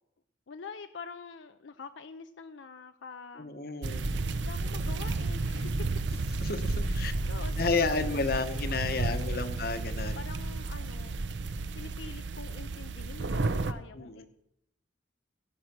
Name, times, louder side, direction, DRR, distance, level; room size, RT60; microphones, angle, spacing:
voice 1, 0.5-3.5 4.4-5.9 6.9-9.6 10.1-14.3, left 4 dB, 80° left, 9 dB, 0.5 m, -46 dB
voice 2, 3.4-4.1 6.4-7.1 7.6-10.2 14.0-14.3, left 3 dB, 50° left, 10 dB, 0.9 m, -31 dB
sound 1, 3.8-13.7, right 3 dB, 70° right, 0.7 m, -32 dB
17.0 x 6.3 x 6.0 m, 0.81 s
head